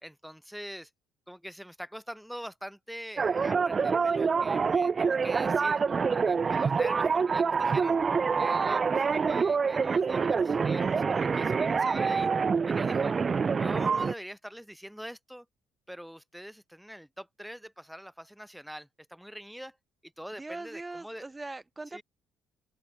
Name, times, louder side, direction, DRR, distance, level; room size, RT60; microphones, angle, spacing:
voice 1, 0.0-0.9 1.3-5.8 6.1-8.0 8.4-12.3 12.7-13.2 13.5-15.5 15.9-19.8 20.0-21.3 21.9-22.0, equal, ahead, 2.0 m, -43 dB
sound 1, 3.2-14.1, right 5 dB, 35° right, 0.7 m, -26 dB
voice 2, 20.4-22.0, right 2 dB, 15° right, 1.3 m, -41 dB
open air
supercardioid pair, 80°, 0 cm